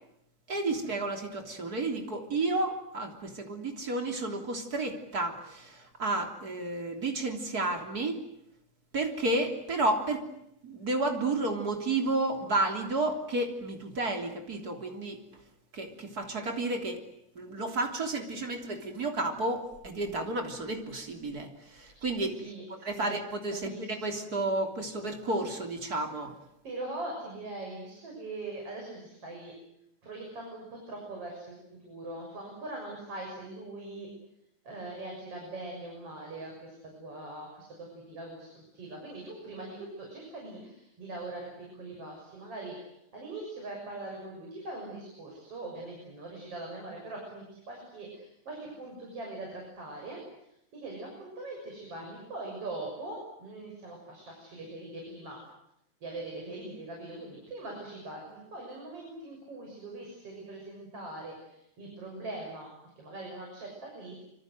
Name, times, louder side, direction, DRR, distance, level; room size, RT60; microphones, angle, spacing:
voice 1, 0.5-8.2 8.9-10.2 10.6-15.2 15.7-17.0 17.4-22.4 22.8-26.4, right 2 dB, 30° right, 4 dB, 3.6 m, -31 dB
voice 2, 21.8-23.2 23.5-24.2 26.6-29.5 30.0-34.1 34.6-55.4 56.0-64.2, right 2 dB, 50° right, 0 dB, 7.7 m, -42 dB
26.0 x 26.0 x 7.9 m, 0.79 s
omnidirectional pair, 3.5 m